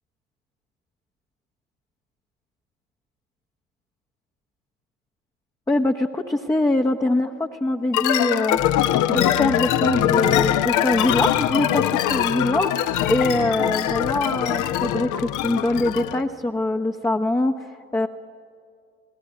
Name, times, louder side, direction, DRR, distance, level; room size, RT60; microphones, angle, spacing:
voice 1, 5.7-8.6 9.1-18.1, left 2 dB, 10° left, 3 dB, 1.0 m, -23 dB
sound 1, 7.9-16.2, left 11 dB, 50° left, 1.0 m, -22 dB
27.5 x 17.5 x 9.2 m, 2.3 s
figure-of-eight pair, 55°, 38 cm